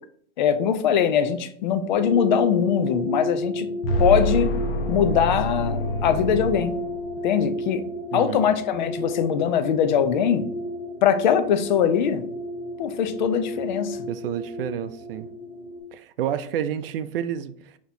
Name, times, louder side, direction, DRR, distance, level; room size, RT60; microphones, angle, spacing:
voice 1, 0.4-3.7 4.0-4.5 4.9-6.7 7.2-7.8 8.1-10.5 11.0-12.2 12.8-14.0, left 8 dB, 50° left, 10 dB, 0.4 m, -22 dB
sound 1, 1.9-15.8, equal, 30° right, 1.7 m, -33 dB
sound 2, 3.8-7.3, equal, 75° left, 1.0 m, -26 dB
voice 2, 8.1-8.5 14.1-15.3 15.9-17.8, right 9 dB, 75° right, 13 dB, 0.5 m, -30 dB
6.0 x 2.9 x 2.7 m, 0.64 s
supercardioid pair, 175°, 29 cm